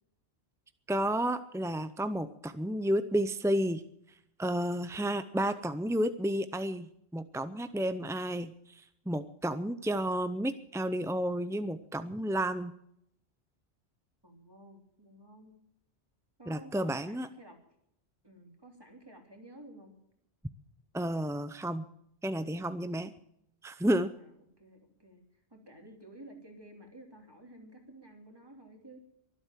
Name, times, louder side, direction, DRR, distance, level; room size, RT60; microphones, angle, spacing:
voice 1, 0.9-3.8 4.4-12.7 16.5-17.3 20.9-21.8 22.2-23.1 23.6-24.1, right 1 dB, 5° right, 11 dB, 0.3 m, -31 dB
voice 2, 14.2-15.5 16.4-17.6 18.2-20.0 24.1-24.3 24.6-25.2 25.5-29.0, right 1 dB, 20° right, 2 dB, 3.2 m, -53 dB
23.0 x 8.2 x 7.4 m, 0.75 s
omnidirectional pair, 1.1 m